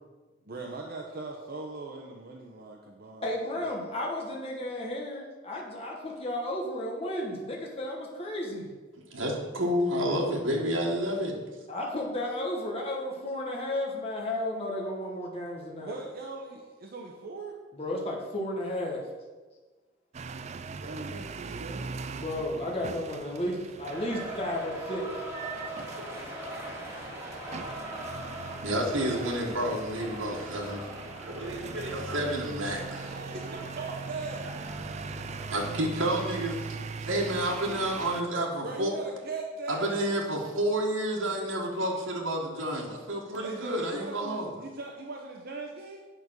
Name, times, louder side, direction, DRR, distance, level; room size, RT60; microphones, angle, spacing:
voice 1, 0.4-3.7 15.8-17.5 20.8-22.0 33.1-34.5 38.6-40.0 43.4-46.0, right 3 dB, 50° right, 1 dB, 0.8 m, -40 dB
voice 2, 3.2-8.7 11.7-15.9 17.7-19.0 22.2-25.1, left 1 dB, 30° left, -2 dB, 1.3 m, -33 dB
voice 3, 9.1-11.4 28.6-30.8 31.2-33.1 35.5-38.9 39.7-44.5, right 1 dB, 75° right, -2 dB, 1.6 m, -30 dB
sound 1, 20.1-38.2, right 4 dB, 35° right, 0.4 m, -40 dB
sound 2, 23.9-35.5, right 1 dB, 15° right, 2.1 m, -41 dB
8.6 x 5.3 x 6.2 m, 1.3 s
head